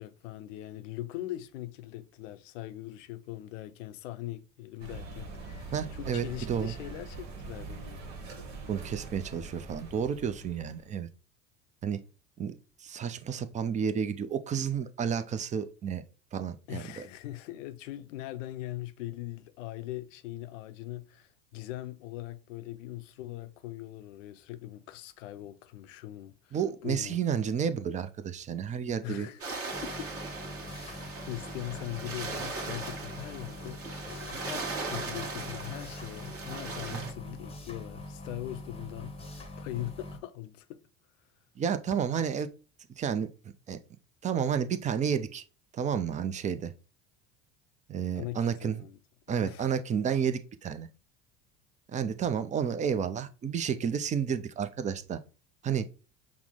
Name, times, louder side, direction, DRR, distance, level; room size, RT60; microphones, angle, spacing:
voice 1, 0.0-8.0 16.7-27.2 29.0-29.5 29.8-30.1 30.6-40.8 48.2-49.0 49.3-49.8, left 15 dB, 70° left, 0.6 m, -41 dB
sound 1, 4.8-10.9, right 3 dB, 75° right, 1.0 m, -43 dB
voice 2, 5.7-6.7 8.7-11.1 11.8-12.0 12.4-16.0 16.3-17.1 26.5-29.3 30.8-31.0 36.9-37.1 41.6-42.5 43.0-43.3 43.7-43.8 44.2-45.4 45.7-46.7 47.9-48.8 49.3-50.9 51.9-55.2 55.6-55.9, right 7 dB, 20° right, 0.4 m, -31 dB
sound 2, 29.4-37.1, right 3 dB, 35° right, 1.3 m, -39 dB
sound 3, 29.7-40.2, left 1 dB, 15° left, 0.8 m, -44 dB
5.8 x 2.0 x 3.6 m
hypercardioid pair, 70°, 39 cm